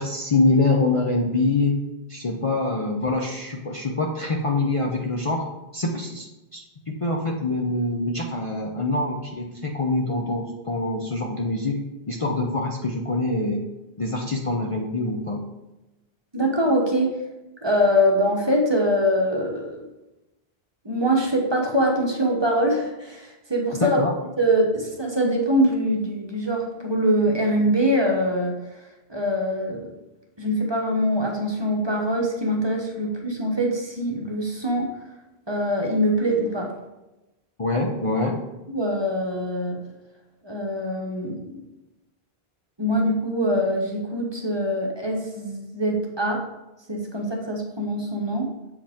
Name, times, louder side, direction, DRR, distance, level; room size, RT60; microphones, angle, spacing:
voice 1, 0.0-1.8 2.1-5.4 5.7-13.7 14.0-15.5 23.8-24.1 37.6-38.4, left 2 dB, 40° left, -1 dB, 0.6 m, -25 dB
voice 2, 16.3-17.1 17.6-19.8 20.8-24.0 24.4-28.6 29.1-29.9 30.4-34.9 35.5-36.7 38.7-39.8 40.4-41.6 42.8-46.4 46.9-48.5, equal, 25° right, 0 dB, 0.9 m, -23 dB
7.4 x 4.9 x 3.5 m, 0.99 s
omnidirectional pair, 1.1 m